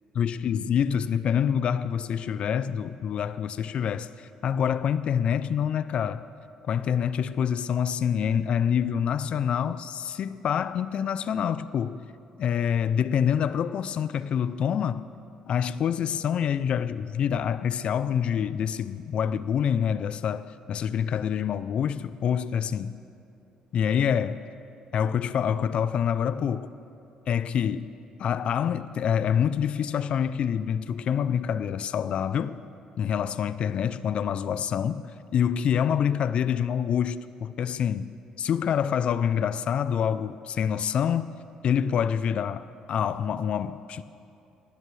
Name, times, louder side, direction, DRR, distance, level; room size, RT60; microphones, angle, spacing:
voice 1, 0.2-6.2 6.6-12.0 12.4-15.0 15.5-23.0 23.7-24.4 24.9-26.7 27.3-27.9 28.2-32.6 33.0-35.0 35.3-38.1 38.4-41.3 41.6-44.0, left 8 dB, 55° left, 0.4 m, -26 dB
17.5 x 17.0 x 3.2 m
cardioid pair, 100°, 2 cm